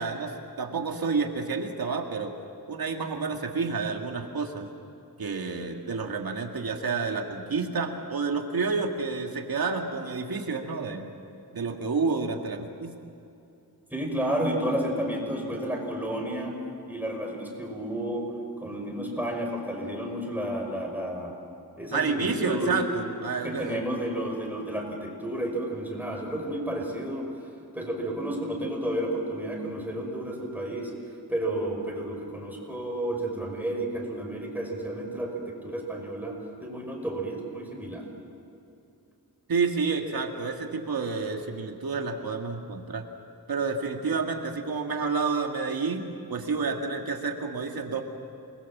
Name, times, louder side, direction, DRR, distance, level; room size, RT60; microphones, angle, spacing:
voice 1, 0.0-2.3 2.7-4.7 5.2-11.1 11.5-12.9 21.9-23.8 39.5-43.0 43.5-46.0 46.3-48.0, right 4 dB, 70° right, 3 dB, 2.1 m, -29 dB
voice 2, 13.9-16.5 16.9-21.3 21.8-22.8 23.4-27.3 27.7-30.9 31.3-38.0, right 1 dB, 5° right, 0 dB, 5.6 m, -31 dB
28.5 x 21.5 x 7.4 m, 2.8 s
wide cardioid pair, 125°, 37 cm